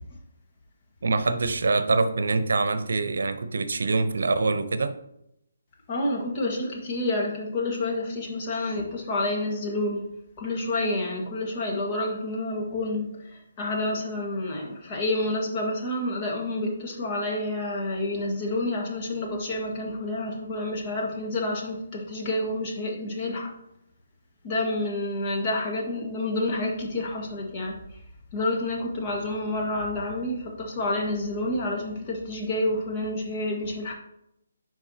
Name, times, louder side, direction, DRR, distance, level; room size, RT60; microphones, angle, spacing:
voice 1, 1.0-5.0, right 3 dB, 75° right, 10 dB, 0.7 m, -24 dB
voice 2, 5.9-10.1 10.4-23.5 24.4-27.8 28.3-33.9, left 1 dB, 30° left, -1 dB, 1.7 m, -29 dB
10.5 x 4.6 x 2.9 m, 0.81 s
hypercardioid pair, 160°, 0 cm